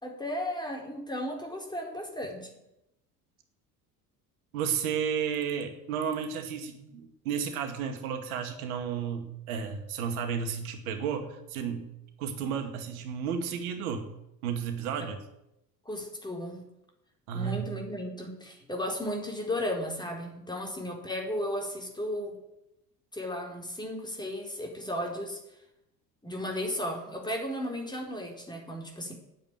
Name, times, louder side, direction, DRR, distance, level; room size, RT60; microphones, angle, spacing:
voice 1, 0.0-2.5 15.8-16.6 17.3-22.4 23.1-25.4 26.2-29.1, left 1 dB, 10° left, 1 dB, 4.4 m, -35 dB
voice 2, 4.5-11.9 12.2-14.1 14.4-15.2 17.3-17.6, right 7 dB, 60° right, 6 dB, 2.2 m, -32 dB
9.1 x 9.0 x 9.3 m, 0.86 s
figure-of-eight pair, 65°, 47 cm